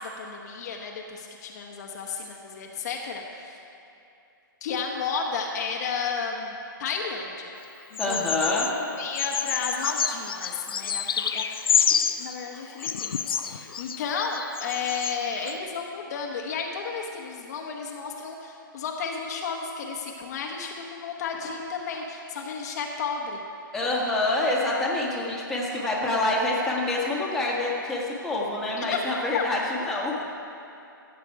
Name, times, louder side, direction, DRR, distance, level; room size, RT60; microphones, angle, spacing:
voice 1, 0.0-3.5 4.6-6.5 6.8-7.5 7.9-23.4 28.8-29.0 29.3-29.4, left 5 dB, 50° left, 1 dB, 1.1 m, -33 dB
Bird vocalization bird call bird song, 8.0-8.7 9.2-12.3 12.8-15.2 15.5-15.6, left 7 dB, 80° left, 0.5 m, -28 dB
voice 2, 8.0-8.7 21.4-21.5 23.7-30.2, left 2 dB, 5° left, -6 dB, 1.6 m, -26 dB
14.5 x 7.6 x 4.7 m, 2.8 s
hypercardioid pair, 145°, 12 cm